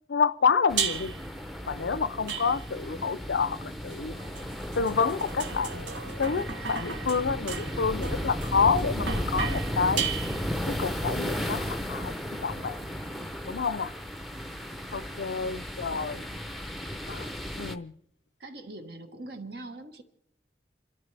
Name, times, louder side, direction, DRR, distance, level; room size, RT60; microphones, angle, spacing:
voice 1, 0.1-1.1 1.7-4.2 4.7-5.9 6.2-10.1 10.7-12.8 13.4-13.9 14.9-16.2 17.1-17.9, left 5 dB, 75° left, 0.5 m, -28 dB
sound 1, 0.7-17.8, equal, ahead, 0.7 m, -34 dB
sound 2, 0.8-1.3 2.3-2.9 3.9-10.7, right 7 dB, 80° right, 1.2 m, -35 dB
voice 2, 15.9-16.5 18.4-20.0, right 2 dB, 60° right, 1.3 m, -43 dB
29.0 x 13.0 x 3.4 m
head